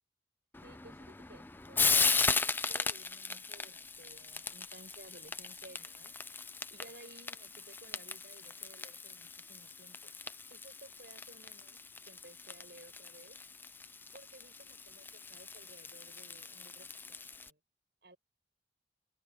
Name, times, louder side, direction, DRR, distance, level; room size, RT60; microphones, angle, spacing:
Frying (food), 0.5-17.5, left 4 dB, 10° left, 0.4 m, -37 dB
voice 1, 0.6-6.2 6.7-10.2 10.5-13.4 14.1-17.6 18.0-18.2, right 1 dB, 65° right, 7.9 m, -57 dB
head